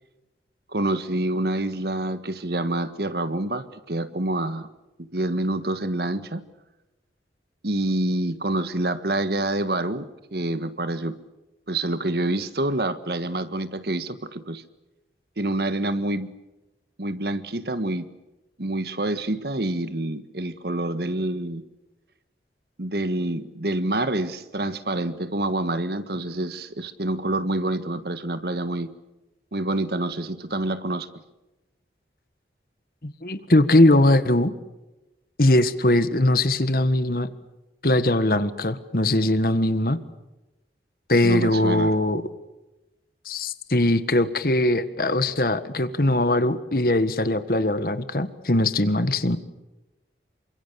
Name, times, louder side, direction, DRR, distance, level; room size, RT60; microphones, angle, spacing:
voice 1, 0.7-4.7 5.0-6.4 7.6-11.2 11.7-14.6 15.4-16.3 17.0-18.1 18.6-21.6 22.8-28.9 29.5-31.1 41.2-41.9, right 1 dB, 65° right, 11 dB, 1.6 m, -27 dB
voice 2, 33.0-34.5 35.4-37.3 37.8-40.0 41.1-42.2 43.2-49.4, left 1 dB, 55° left, 12 dB, 1.6 m, -21 dB
28.5 x 25.0 x 7.0 m, 1.0 s
head